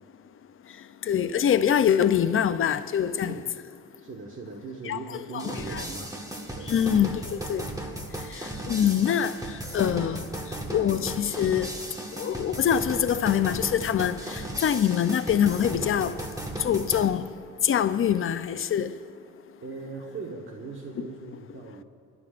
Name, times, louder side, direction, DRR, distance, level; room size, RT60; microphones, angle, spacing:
voice 1, 1.0-3.4 4.9-5.0 5.3-5.8 6.7-7.6 8.3-9.4 9.7-10.3 10.7-11.7 12.2-16.2 16.6-17.3 17.6-18.9, left 9 dB, 45° left, 0.6 m, -24 dB
voice 2, 4.0-6.1 6.5-6.7 19.6-21.8, right 4 dB, 45° right, 1.4 m, -39 dB
sound 1, 5.4-17.1, right 1 dB, 10° right, 1.5 m, -36 dB
28.0 x 12.5 x 2.5 m
cardioid pair, 90°, 30 cm